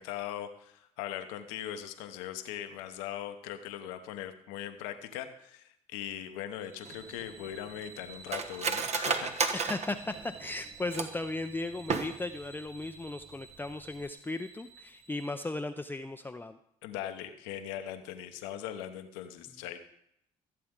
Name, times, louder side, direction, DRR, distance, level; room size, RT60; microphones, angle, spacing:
voice 1, 0.0-9.4 16.8-19.8, left 11 dB, 85° left, 8 dB, 0.9 m, -40 dB
sound 1, 6.6-15.3, right 4 dB, 90° right, 2.8 m, -52 dB
Cutlery silverware, 6.8-11.3 11.8-12.5 12.8-12.9 13.2-13.6 13.9-14.1, right 5 dB, 45° right, 1.2 m, -33 dB
voice 2, 9.5-16.6, left 2 dB, 15° left, 7 dB, 0.5 m, -36 dB
15.5 x 7.8 x 3.7 m, 0.73 s
hypercardioid pair, 60°, 15 cm